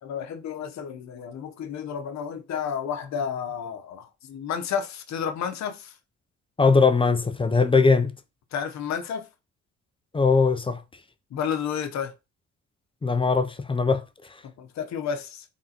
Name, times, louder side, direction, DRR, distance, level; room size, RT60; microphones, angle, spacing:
voice 1, 0.0-5.9 8.5-9.3 11.3-12.1 14.4-15.4, left 7 dB, 65° left, 0.8 m, -31 dB
voice 2, 6.6-8.1 10.1-10.8 13.0-14.0, left 4 dB, 20° left, 0.4 m, -20 dB
3.8 x 3.5 x 2.8 m
cardioid pair, 90°, 30 cm